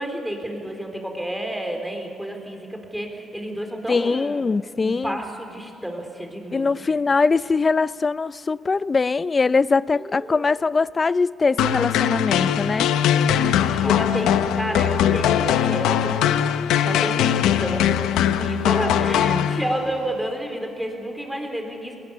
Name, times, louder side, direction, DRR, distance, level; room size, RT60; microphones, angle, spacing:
voice 1, 0.0-4.4 4.8-7.0 9.9-10.4 13.1-16.4 16.8-22.0, right 1 dB, 5° right, 3 dB, 3.9 m, -31 dB
voice 2, 3.9-5.2 6.5-12.9 13.8-14.1 19.3-19.5, left 4 dB, 30° left, 19 dB, 0.4 m, -22 dB
sound 1, 11.6-20.0, left 10 dB, 90° left, 0.7 m, -21 dB
20.5 x 18.5 x 8.3 m, 2.8 s
cardioid pair, 90°, 0 cm